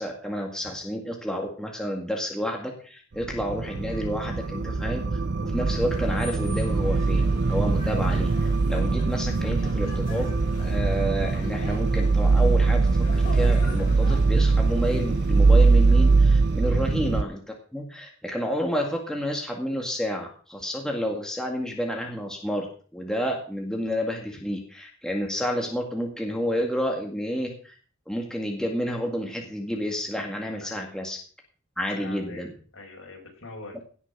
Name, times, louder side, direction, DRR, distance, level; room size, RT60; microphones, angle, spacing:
voice 1, 0.0-5.0 5.4-10.3 10.6-17.4 17.7-22.7 22.9-27.7 28.1-31.2 31.8-32.5 33.7-33.8, equal, 5° left, 0 dB, 2.0 m, -30 dB
sound 1, 3.2-17.2, right 3 dB, 55° right, 0.6 m, -22 dB
sound 2, 5.6-16.7, left 1 dB, 45° left, 6.8 m, -42 dB
voice 2, 31.9-33.8, left 2 dB, 70° left, 0 dB, 6.1 m, -43 dB
17.5 x 6.2 x 6.1 m, 0.42 s
head